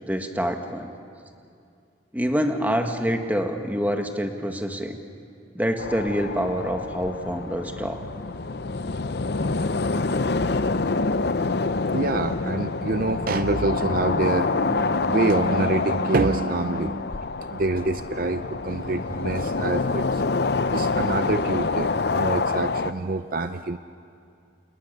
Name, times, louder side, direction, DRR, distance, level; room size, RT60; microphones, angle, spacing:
voice 1, 0.1-0.9 2.1-5.0 5.5-8.0, equal, 10° right, 4 dB, 1.8 m, -26 dB
sound 1, 5.8-22.9, left 3 dB, 60° left, 0.7 m, -26 dB
voice 2, 11.9-17.1 17.5-20.2 20.7-23.8, right 3 dB, 50° right, 10 dB, 0.6 m, -26 dB
29.5 x 29.0 x 6.9 m, 2.4 s
head